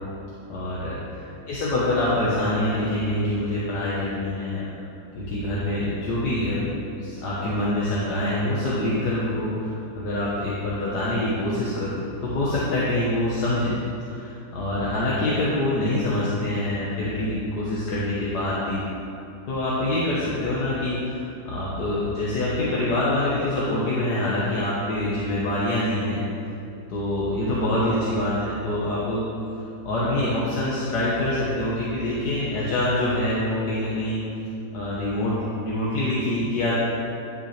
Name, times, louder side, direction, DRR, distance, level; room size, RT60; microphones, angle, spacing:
voice 1, 0.5-4.7 5.2-6.7 7.0-18.8 19.5-26.2 26.9-29.3 29.9-34.2 34.7-36.7, left 1 dB, 75° left, -8 dB, 1.8 m, -25 dB
10.5 x 7.6 x 3.4 m, 2.6 s
omnidirectional pair, 1.8 m